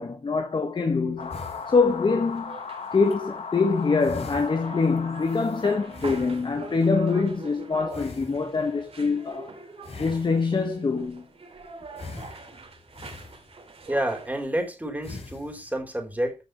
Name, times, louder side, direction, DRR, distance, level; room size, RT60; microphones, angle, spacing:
voice 1, 0.0-1.4 1.7-2.6 2.9-9.5 10.0-11.3, left 4 dB, 50° left, 1.5 m, -24 dB
sound 1, 1.2-6.2, left 5 dB, 80° left, 1.6 m, -37 dB
sound 2, 1.2-14.5, right 3 dB, 70° right, 3.5 m, -43 dB
sound 3, 1.3-2.4 2.9-3.2 3.7-3.8 4.0-6.8 7.9-8.8 9.8-10.8 12.0-13.8 14.4-14.6 15.0-15.8, left 3 dB, 65° left, 5.3 m, -43 dB
voice 2, 13.9-16.4, right 1 dB, 15° right, 4.0 m, -29 dB
15.0 x 6.4 x 3.2 m
wide cardioid pair, 115°, 11 cm